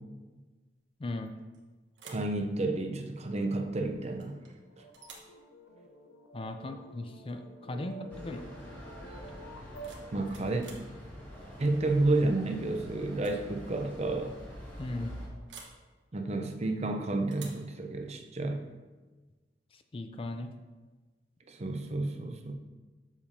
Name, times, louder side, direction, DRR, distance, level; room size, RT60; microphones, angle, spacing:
voice 1, 1.0-1.3 6.3-8.4 14.8-15.1 19.9-20.5, left 2 dB, 30° left, 7 dB, 0.4 m, -37 dB
sound 1, 1.3-1.6 1.9-2.4 4.2-4.6 4.9-5.4 7.2-7.4 7.7-8.1 9.5-10.9 12.4-12.7 13.1-13.4 13.7-13.8 15.5-15.8 17.3-17.7, right 5 dB, 85° right, 1.2 m, -51 dB
voice 2, 2.0-4.4 7.7-7.8 10.1-10.6 11.6-14.3 16.1-18.6 21.5-22.5, right 2 dB, 40° right, 4 dB, 0.6 m, -31 dB
sound 2, 3.4-10.6, right 2 dB, 70° left, 0.7 m, -50 dB
sound 3, 8.1-15.3, equal, 10° left, 1.5 m, -46 dB
7.2 x 6.9 x 2.7 m, 1.3 s
head